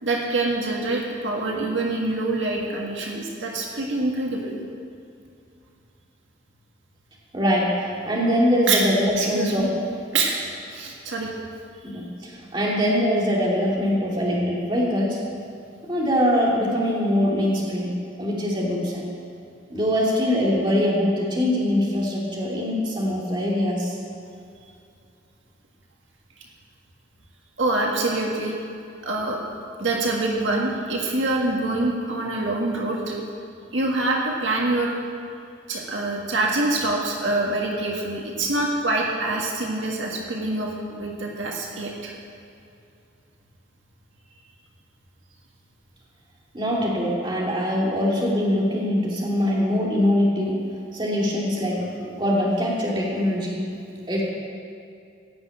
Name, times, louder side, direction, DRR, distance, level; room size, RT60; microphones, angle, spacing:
voice 1, 0.0-4.5 8.7-8.8 9.2-9.7 10.1-10.4 10.7-11.3 27.6-28.5 29.0-29.4 29.8-33.2 33.7-34.9 35.7-42.1, right 2 dB, 80° right, -1 dB, 1.7 m, -25 dB
voice 2, 7.3-9.9 11.8-15.2 15.9-19.1 19.7-24.0 46.5-50.6 50.9-53.6 53.9-54.2, equal, 25° right, -5 dB, 2.7 m, -23 dB
16.5 x 6.3 x 8.8 m, 2.5 s
head